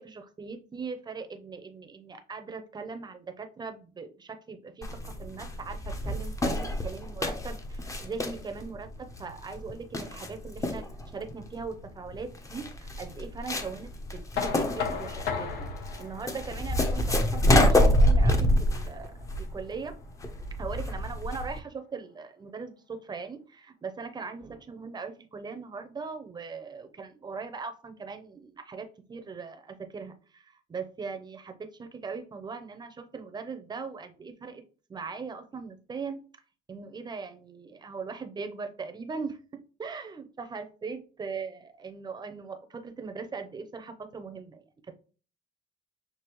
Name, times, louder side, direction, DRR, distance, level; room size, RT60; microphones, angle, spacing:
voice 1, 0.0-10.8 11.1-15.7 16.0-20.0 20.6-34.6 34.9-36.2 36.7-44.6, right 5 dB, 25° right, 7 dB, 0.7 m, -40 dB
sound 1, 4.8-21.6, left 1 dB, 20° left, 0.7 m, -27 dB
Knock, 14.4-20.2, left 6 dB, 80° left, 0.9 m, -37 dB
6.1 x 2.7 x 3.1 m, 0.38 s
cardioid pair, 110°, 17 cm